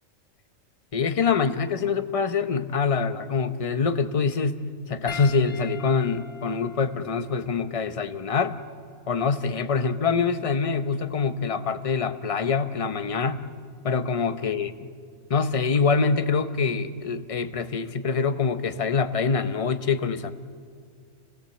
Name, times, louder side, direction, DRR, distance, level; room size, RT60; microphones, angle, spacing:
voice 1, 0.9-4.6 4.9-8.6 9.1-13.5 13.8-14.7 15.3-20.3, left 5 dB, 30° left, 10 dB, 0.8 m, -25 dB
Piano, 5.1-9.7 10.7-10.9 12.8-12.9, left 5 dB, 50° left, 1.7 m, -44 dB
28.5 x 18.0 x 7.8 m, 2.1 s
omnidirectional pair, 1.4 m